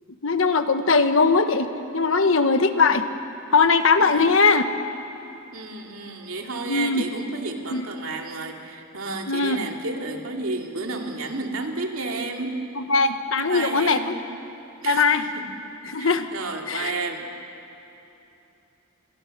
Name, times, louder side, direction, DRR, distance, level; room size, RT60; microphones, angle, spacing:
voice 1, 0.2-3.1 3.5-4.6 6.7-7.0 7.7-7.9 9.3-9.7 12.7-14.2 14.8-15.2 15.8-16.3 16.7-16.9, left 4 dB, 70° left, 9 dB, 1.2 m, -20 dB
voice 2, 5.5-12.6 13.4-14.2 14.8-15.1 15.3-15.4 16.0-17.3, right 3 dB, 80° right, 2 dB, 2.6 m, -31 dB
26.5 x 22.0 x 6.7 m, 2.9 s
head